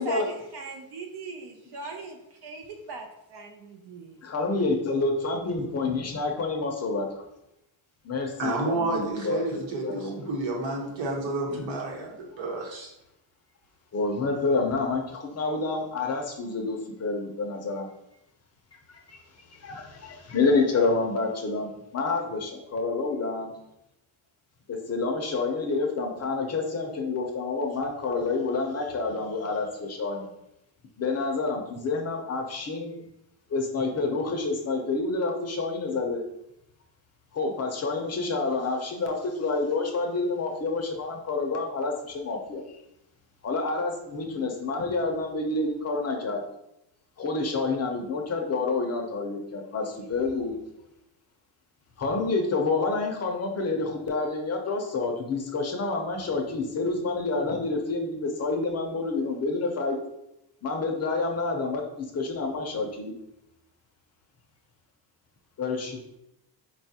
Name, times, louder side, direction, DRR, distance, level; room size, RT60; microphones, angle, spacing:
voice 1, 0.0-4.2, right 3 dB, 60° right, 3 dB, 0.5 m, -39 dB
voice 2, 4.2-7.1 8.0-10.2 13.9-17.9 19.1-19.2 19.5-23.5 24.7-30.3 31.0-33.0 33.5-36.2 37.3-42.6 43.4-46.4 47.2-50.5 52.0-60.0 60.6-63.2 65.6-66.0, left 3 dB, 35° left, 2 dB, 0.5 m, -28 dB
voice 3, 8.4-12.9, right 2 dB, 75° right, -1 dB, 1.1 m, -30 dB
4.1 x 2.3 x 2.7 m, 0.85 s
cardioid pair, 110°, 46 cm